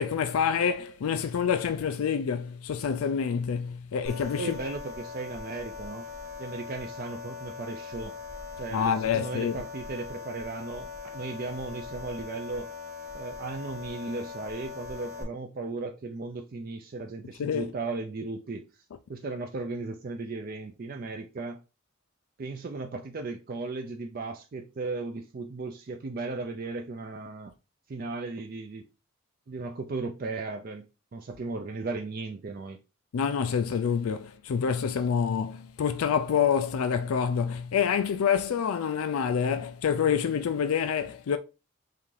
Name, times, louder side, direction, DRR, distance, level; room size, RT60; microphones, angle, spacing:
voice 1, 0.0-4.6 8.7-9.6 17.4-17.7 33.1-41.4, left 7 dB, 85° left, 0.4 m, -27 dB
sound 1, 4.1-15.2, left 5 dB, 75° right, 1.6 m, -41 dB
voice 2, 4.4-6.1 6.4-8.2 8.6-12.7 13.1-18.6 19.1-21.6 22.4-27.5 27.9-28.8 29.5-30.9 31.1-32.8, right 3 dB, 45° right, 0.4 m, -36 dB
5.6 x 2.5 x 3.2 m
head